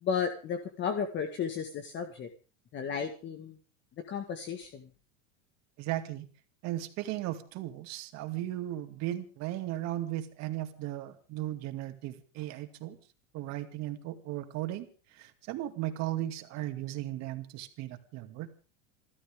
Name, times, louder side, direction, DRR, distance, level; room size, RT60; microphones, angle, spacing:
voice 1, 0.0-2.3 2.7-3.6 4.1-4.9, left 6 dB, 30° left, 6 dB, 1.7 m, -34 dB
voice 2, 5.8-6.3 6.6-13.0 13.3-18.5, right 14 dB, 45° right, 7 dB, 2.5 m, -36 dB
28.5 x 13.0 x 3.7 m, 0.36 s
supercardioid pair, 140°, 36 cm